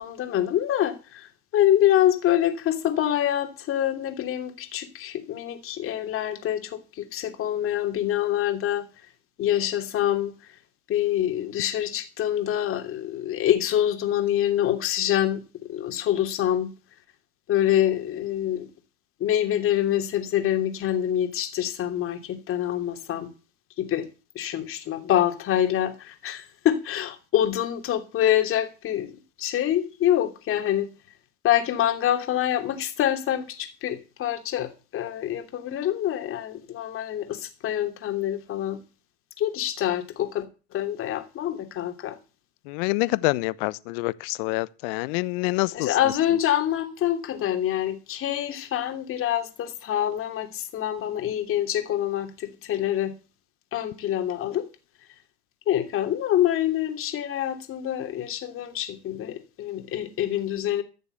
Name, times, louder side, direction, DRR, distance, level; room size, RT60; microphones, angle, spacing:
voice 1, 0.0-8.9 9.4-10.6 10.9-16.7 17.5-18.7 19.2-23.3 23.8-24.1 24.3-30.9 31.4-38.8 39.4-40.5 40.7-42.2 45.7-53.1 53.7-54.7 55.7-60.8, left 11 dB, 40° left, 3.0 m, -26 dB
voice 2, 42.7-45.9, left 23 dB, 60° left, 0.9 m, -26 dB
14.5 x 6.9 x 8.0 m
hypercardioid pair, 105°, 33 cm